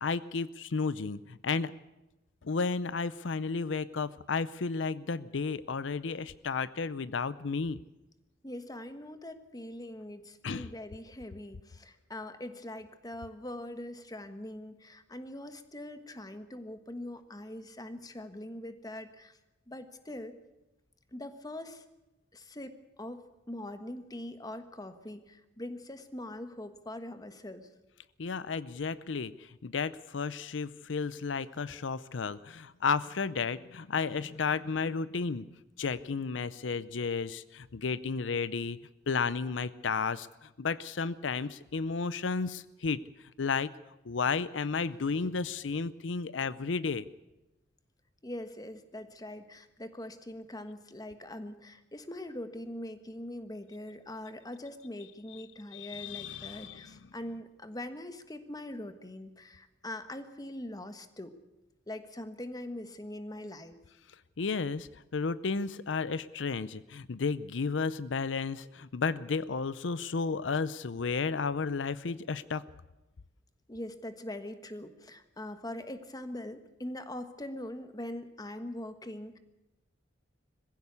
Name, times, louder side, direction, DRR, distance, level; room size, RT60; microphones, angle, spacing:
voice 1, 0.0-1.7 2.4-7.8 10.4-10.7 28.2-29.3 29.6-38.8 39.1-43.0 43.4-43.7 44.1-47.0 55.7-57.0 64.4-72.6, left 4 dB, 85° left, 17 dB, 0.6 m, -33 dB
voice 2, 8.4-19.4 19.7-20.3 21.1-21.8 22.3-23.2 23.5-27.7 48.2-61.3 61.9-63.7 73.7-79.4, left 1 dB, 20° left, 9 dB, 1.4 m, -42 dB
21.5 x 15.5 x 8.3 m, 0.98 s
head